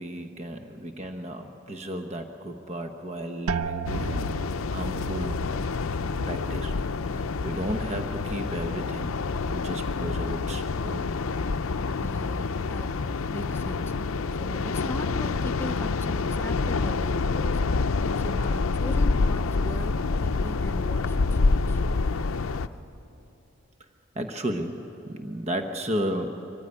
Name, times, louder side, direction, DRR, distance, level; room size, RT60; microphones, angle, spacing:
voice 1, 0.0-4.3 4.7-5.5 6.2-6.8 7.1-9.2 9.5-11.1 24.1-26.5, right 1 dB, 30° right, 6 dB, 1.0 m, -34 dB
sound 1, 3.5-9.1 9.4-10.1 10.7-11.1, right 6 dB, 85° right, 0.6 m, -38 dB
sound 2, 3.9-22.7, left 4 dB, 70° left, 0.6 m, -27 dB
voice 2, 12.0-14.0 14.4-17.9 18.2-21.8, left 1 dB, 10° left, 7 dB, 0.5 m, -39 dB
24.0 x 15.0 x 9.6 m, 2.9 s
head